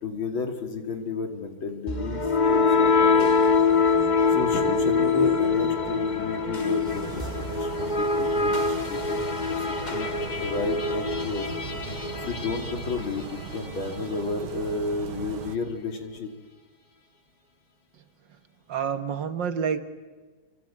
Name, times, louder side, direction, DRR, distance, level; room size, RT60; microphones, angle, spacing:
voice 1, 0.0-3.4 4.3-9.6 9.9-11.5 12.2-16.3, left 3 dB, 80° left, 5 dB, 3.4 m, -32 dB
sound 1, 1.9-13.8, left 4 dB, 20° left, 1.8 m, -24 dB
sound 2, 6.9-15.6, right 7 dB, 80° right, 1.9 m, -39 dB
voice 2, 18.7-19.8, right 7 dB, 65° right, 10 dB, 2.0 m, -28 dB
27.5 x 25.0 x 8.6 m, 1.4 s
omnidirectional pair, 2.2 m